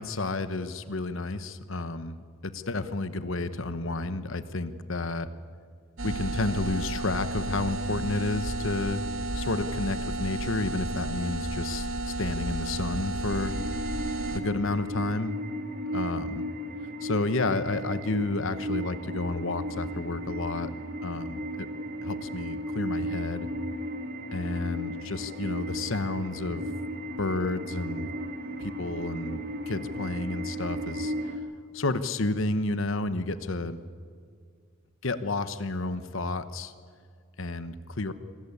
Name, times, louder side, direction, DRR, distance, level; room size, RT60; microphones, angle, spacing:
voice 1, 0.0-2.2 2.4-5.3 6.0-9.0 9.3-13.6 14.3-15.4 15.9-16.5 17.0-20.7 21.0-21.7 22.0-23.5 24.3-26.6 27.2-28.1 28.6-29.4 29.7-31.1 31.7-33.8 35.0-36.7 37.4-38.1, left 2 dB, 65° left, 12 dB, 1.1 m, -31 dB
sound 1, 6.0-14.4, right 2 dB, 70° right, 1.4 m, -32 dB
sound 2, 13.3-31.4, equal, 45° right, 1.8 m, -35 dB
26.0 x 14.0 x 9.8 m, 2.1 s
head